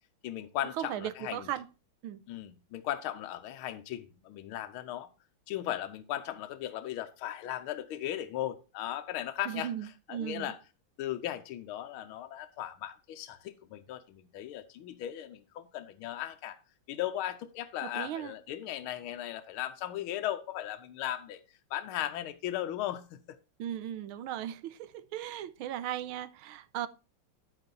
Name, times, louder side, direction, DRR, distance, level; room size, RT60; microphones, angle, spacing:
voice 1, 0.2-1.5 2.3-5.1 5.5-9.7 10.1-10.6 11.0-16.6 16.9-21.4 21.7-23.4, left 12 dB, 85° left, 1.6 m, -37 dB
voice 2, 0.8-1.7 2.0-2.2 9.5-10.5 17.8-18.3 23.6-26.9, right 11 dB, 80° right, 1.5 m, -37 dB
10.5 x 9.0 x 2.6 m
omnidirectional pair, 2.3 m